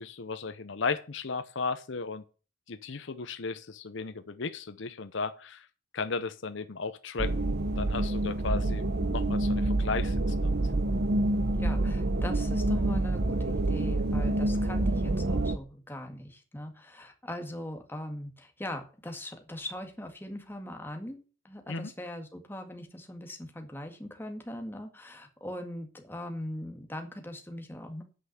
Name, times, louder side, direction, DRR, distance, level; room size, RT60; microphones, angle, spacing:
voice 1, 0.0-2.2 2.7-5.7 5.9-10.6 21.7-21.9, left 4 dB, 60° left, 10 dB, 0.7 m, -35 dB
sound 1, 7.2-15.6, right 2 dB, 50° right, 0.8 m, -27 dB
voice 2, 11.5-28.0, left 1 dB, 10° left, 4 dB, 1.9 m, -40 dB
9.6 x 5.7 x 7.9 m, 0.36 s
head